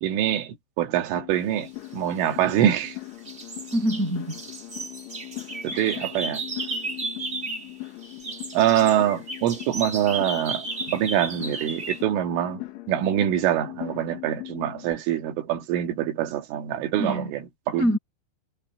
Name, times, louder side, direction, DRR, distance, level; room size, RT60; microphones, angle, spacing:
voice 1, 0.0-3.0 5.6-6.4 8.5-12.6 12.9-17.9, right 11 dB, 80° right, 4.5 m, -25 dB
sound 1, 1.2-15.0, left 20 dB, 80° left, 4.5 m, -40 dB
sound 2, 2.1-2.9 3.2-7.8 8.0-12.0, right 3 dB, 50° right, 0.8 m, -34 dB
voice 2, 3.7-4.4 5.7-6.0 17.0-17.3 17.8-18.0, equal, 15° right, 7.4 m, -25 dB
omnidirectional pair, 5.6 m